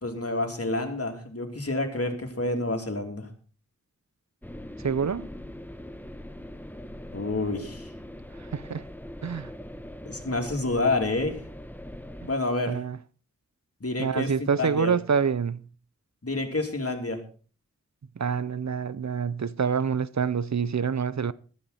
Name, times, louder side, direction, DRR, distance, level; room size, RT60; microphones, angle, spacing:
voice 1, 0.0-3.3 7.1-7.9 10.1-11.4 12.3-12.8 13.8-14.3 14.6-14.9 16.2-17.2, left 2 dB, 50° left, 3.0 m, -28 dB
sound 1, 4.4-12.3, left 1 dB, 5° left, 1.0 m, -42 dB
voice 2, 4.8-5.3 8.3-8.8 9.2-9.5 12.7-13.0 14.0-15.6 18.2-21.3, right 6 dB, 65° right, 0.6 m, -27 dB
14.5 x 13.0 x 4.2 m
wide cardioid pair, 65°, 30 cm